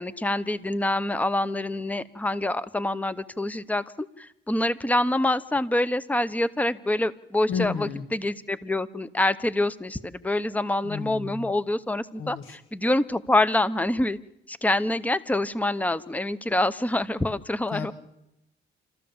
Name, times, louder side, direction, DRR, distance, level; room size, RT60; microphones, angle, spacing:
voice 1, 0.0-14.2 14.5-17.9, left 1 dB, 5° left, 15 dB, 0.8 m, -26 dB
voice 2, 7.5-8.1 10.8-11.5 12.2-12.6 17.7-17.9, left 6 dB, 80° left, 6 dB, 2.0 m, -32 dB
27.5 x 14.0 x 7.1 m, 0.87 s
cardioid pair, 90°, 20 cm